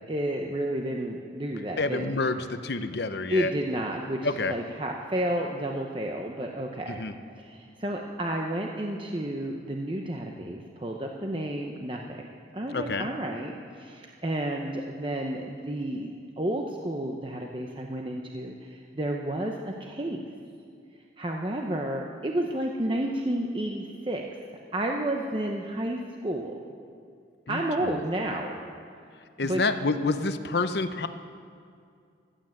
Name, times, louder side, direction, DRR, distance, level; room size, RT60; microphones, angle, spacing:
voice 1, 0.1-2.1 3.3-7.0 7.4-12.3 12.5-20.2 21.2-24.2 24.7-26.5 27.5-28.5 29.4-29.6, right 1 dB, 25° right, 1 dB, 0.8 m, -31 dB
voice 2, 1.8-3.5 4.2-4.5 7.0-7.1 12.7-13.1 27.5-28.0 29.4-31.1, left 3 dB, 60° left, 10 dB, 0.8 m, -28 dB
15.0 x 11.5 x 7.7 m, 2.4 s
head